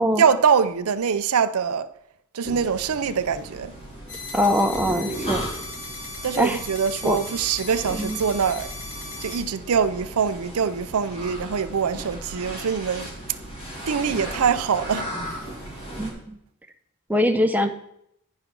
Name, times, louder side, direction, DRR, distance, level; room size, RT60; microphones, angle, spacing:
voice 1, 0.2-1.9 2.3-3.7 6.2-8.7 9.2-13.1 13.9-15.1, right 6 dB, 75° right, 0.5 m, -23 dB
sound 1, 2.4-16.1, right 1 dB, 30° left, 2.7 m, -36 dB
sound 2, 4.1-9.4, left 3 dB, 60° left, 2.0 m, -37 dB
voice 2, 4.3-5.4 6.4-6.6 7.0-7.2 7.9-8.2 16.0-16.4 17.1-17.7, equal, 5° right, 0.6 m, -22 dB
10.5 x 5.3 x 5.9 m
head